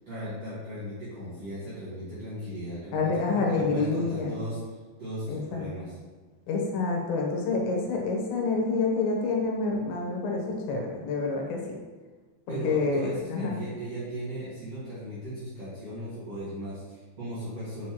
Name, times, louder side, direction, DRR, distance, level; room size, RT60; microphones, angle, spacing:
voice 1, 0.1-4.6 5.0-6.0 12.5-17.9, right 1 dB, 45° right, -12 dB, 2.3 m, -37 dB
voice 2, 2.9-4.3 5.3-5.7 6.5-11.6 12.5-13.5, left 4 dB, 80° left, 0 dB, 3.2 m, -28 dB
6.7 x 6.5 x 3.0 m, 1.4 s
omnidirectional pair, 5.2 m